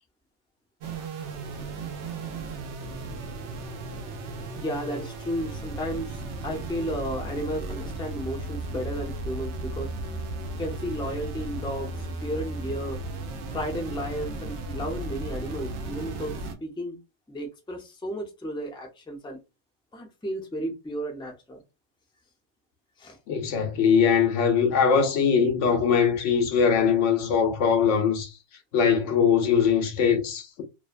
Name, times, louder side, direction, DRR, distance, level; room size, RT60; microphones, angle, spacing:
sound 1, 0.8-16.5, right 2 dB, 75° right, 0.9 m, -35 dB
voice 1, 4.6-9.9 10.5-13.0 13.5-16.3 16.6-17.0 17.3-19.4 19.9-21.6 23.0-23.2, equal, 5° left, 0.3 m, -33 dB
voice 2, 23.3-28.3 28.7-30.6, left 6 dB, 85° left, 1.0 m, -21 dB
2.7 x 2.1 x 2.4 m
omnidirectional pair, 1.2 m